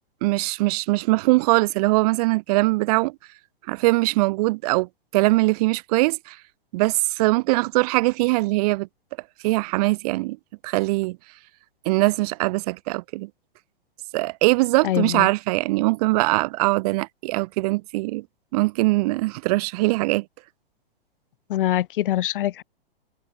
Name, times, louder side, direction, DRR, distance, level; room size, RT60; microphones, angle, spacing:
voice 1, 0.2-3.1 3.7-6.4 6.7-8.9 9.4-10.4 10.6-11.2 11.9-13.3 14.1-18.2 18.5-20.2, right 22 dB, 40° right, 0.6 m, -21 dB
voice 2, 14.8-15.3 21.5-22.6, left 13 dB, 60° left, 1.4 m, -24 dB
hypercardioid pair, 120°, 30 cm